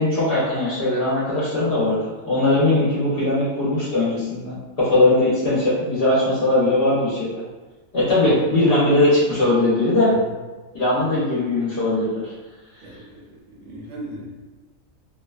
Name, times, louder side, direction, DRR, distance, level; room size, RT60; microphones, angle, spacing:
voice 1, 0.0-7.4 7.9-10.1 10.7-12.3, left 2 dB, 55° left, -8 dB, 0.7 m, -20 dB
voice 2, 12.8-14.3, right 1 dB, 65° right, -5 dB, 1.0 m, -38 dB
2.6 x 2.1 x 2.3 m, 1.2 s
omnidirectional pair, 1.4 m